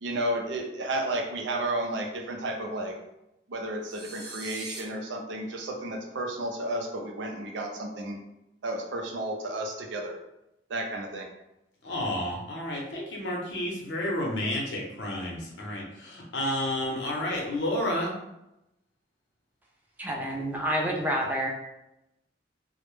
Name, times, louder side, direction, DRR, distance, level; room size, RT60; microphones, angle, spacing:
voice 1, 0.0-3.0 3.5-8.2 8.6-10.2 10.7-11.2, right 1 dB, 90° right, 2 dB, 0.5 m, -32 dB
sound 1, 3.8-4.8, right 3 dB, 65° right, 0.7 m, -41 dB
voice 2, 11.8-18.1, left 1 dB, 80° left, -2 dB, 0.7 m, -31 dB
voice 3, 20.0-21.5, equal, 10° right, -1 dB, 0.3 m, -28 dB
2.1 x 2.0 x 3.0 m, 0.88 s
head